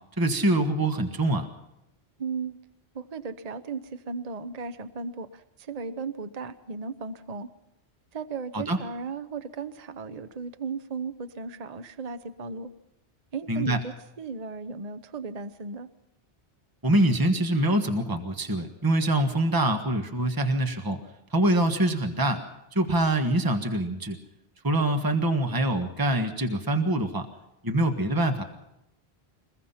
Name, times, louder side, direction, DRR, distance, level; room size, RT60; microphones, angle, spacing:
voice 1, 0.2-1.5 8.5-8.8 13.5-13.8 16.8-21.0 21.3-22.4 22.7-24.2 24.6-27.3 27.6-28.4, right 1 dB, 20° right, 6 dB, 1.5 m, -24 dB
voice 2, 2.2-2.6 2.9-7.5 8.1-12.7 13.3-15.9, right 4 dB, 40° right, 11 dB, 0.9 m, -36 dB
23.0 x 21.0 x 5.7 m, 0.88 s
omnidirectional pair, 1.1 m